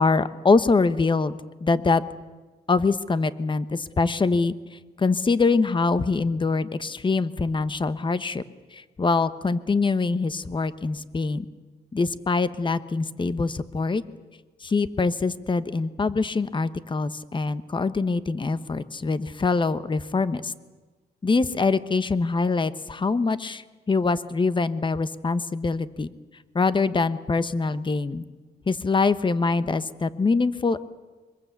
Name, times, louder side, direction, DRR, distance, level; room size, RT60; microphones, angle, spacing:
voice 1, 0.0-2.0 2.7-4.5 5.0-8.4 8.7-11.5 11.9-14.0 14.6-20.5 21.2-23.6 23.9-26.1 26.5-28.2 28.7-30.8, left 4 dB, 25° left, 13 dB, 1.1 m, -24 dB
24.5 x 21.5 x 8.3 m, 1.3 s
cardioid pair, 100°, 18 cm